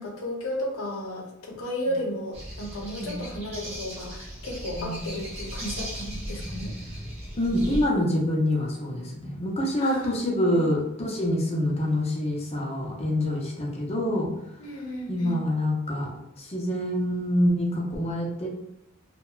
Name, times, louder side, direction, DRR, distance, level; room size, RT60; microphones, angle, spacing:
voice 1, 0.0-6.7 9.8-10.7 14.6-15.4, left 1 dB, 90° left, 0 dB, 0.7 m, -34 dB
sound 1, 2.3-7.8, equal, 30° right, 0.8 m, -37 dB
voice 2, 4.8-5.1 7.4-14.3 15.1-16.1 16.4-18.5, left 1 dB, 30° left, -2 dB, 0.5 m, -26 dB
2.8 x 2.1 x 2.3 m, 0.88 s
head